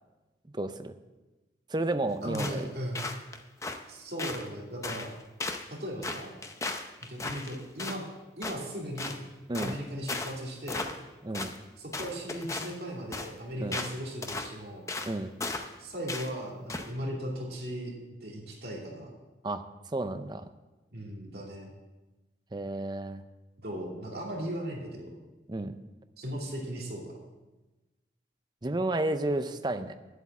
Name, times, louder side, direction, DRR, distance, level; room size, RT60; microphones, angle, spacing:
voice 1, 0.5-0.9 1.7-2.7 9.5-9.8 11.2-11.5 13.6-13.8 15.1-15.3 19.4-19.6 19.9-20.4 22.5-23.2 25.5-25.8 28.6-29.9, right 2 dB, 25° right, 10 dB, 0.6 m, -31 dB
voice 2, 2.2-3.0 3.9-5.1 5.7-6.3 7.0-8.1 8.4-9.2 9.6-10.9 11.8-14.9 15.8-19.1 20.9-21.7 23.6-25.1 26.2-27.1, equal, 60° right, -2 dB, 2.7 m, -37 dB
sound 1, 2.3-2.6 3.0-3.8 4.2-4.5 4.8-5.1 5.4-5.7 6.0-8.0 8.4-8.6 9.0-9.2 9.5-9.8 10.1-10.4 10.7-11.1 11.3-11.6 11.9-12.8 13.1-13.3 13.7-13.9 14.2-14.5 14.9-15.1 15.4-15.7 16.1-16.3 16.7-16.9, left 3 dB, 15° left, 0.7 m, -36 dB
10.5 x 8.0 x 7.3 m, 1.1 s
head